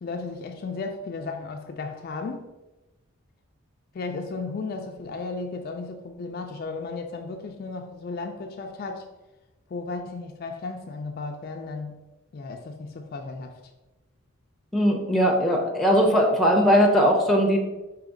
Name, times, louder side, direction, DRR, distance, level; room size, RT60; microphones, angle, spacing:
voice 1, 0.0-2.4 3.9-9.1 9.7-12.0 12.3-13.6, left 3 dB, 45° left, 4 dB, 0.3 m, -34 dB
voice 2, 14.7-17.6, equal, ahead, 0 dB, 0.6 m, -19 dB
5.0 x 2.8 x 3.7 m, 1.0 s
head